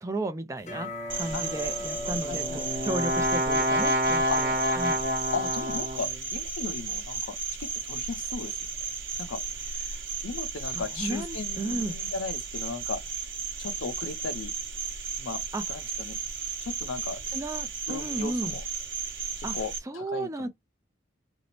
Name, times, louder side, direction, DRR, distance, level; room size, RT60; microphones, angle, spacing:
voice 1, 0.0-5.1 9.9-10.0 10.7-12.0 15.5-15.6 17.3-18.6 19.4-19.6 19.9-20.5, right 2 dB, 15° right, 0.3 m, -34 dB
sound 1, 0.6-5.6, left 2 dB, 35° left, 0.7 m, -40 dB
Cricket, 1.1-19.8, right 5 dB, 80° right, 0.7 m, -35 dB
voice 2, 2.0-2.7 4.3-4.4 5.3-8.6 9.2-9.4 10.2-13.0 13.6-14.5 15.2-15.4 15.7-16.2 16.6-17.2 17.9-18.6 19.4-20.5, left 4 dB, 85° left, 0.5 m, -36 dB
Brass instrument, 2.0-6.2, equal, 45° right, 0.8 m, -27 dB
2.6 x 2.0 x 2.9 m
head